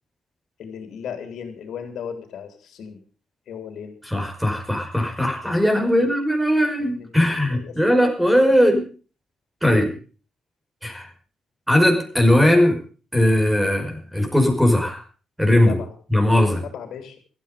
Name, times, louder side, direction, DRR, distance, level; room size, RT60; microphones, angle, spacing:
voice 1, 0.6-3.0 3.5-3.9 5.8-6.1 6.8-7.8 9.7-10.0 15.7-15.9 16.6-17.2, left 7 dB, 70° left, 6 dB, 3.5 m, -36 dB
voice 2, 4.1-8.9 9.6-9.9 10.8-11.1 11.7-12.8 13.1-15.0 15.4-15.8 16.1-16.6, left 1 dB, 5° right, 4 dB, 5.4 m, -19 dB
16.5 x 13.5 x 5.2 m, 0.39 s
cardioid pair, 90°, 0 cm